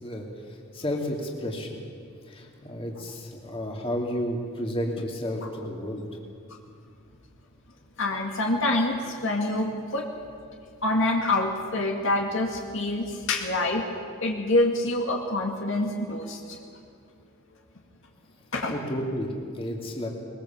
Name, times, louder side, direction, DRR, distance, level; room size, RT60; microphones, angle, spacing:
voice 1, 0.0-1.7 2.3-6.0 18.7-20.1, equal, 25° left, 0 dB, 2.7 m, -32 dB
voice 2, 8.0-10.1 10.8-13.9 14.2-16.6 18.5-18.7, left 2 dB, 60° left, 1 dB, 2.1 m, -26 dB
22.0 x 21.5 x 7.4 m, 2.4 s
head